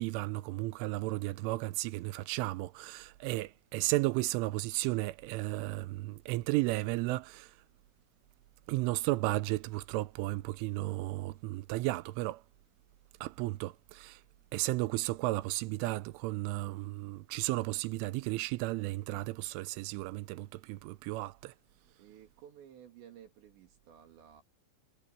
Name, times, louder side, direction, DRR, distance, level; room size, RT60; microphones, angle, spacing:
voice 1, 0.0-7.5 8.7-12.4 13.2-14.2 14.5-21.5, right 19 dB, 80° right, 3.1 m, -34 dB
voice 2, 22.0-24.4, right 9 dB, 65° right, 4.5 m, -54 dB
omnidirectional pair, 5.8 m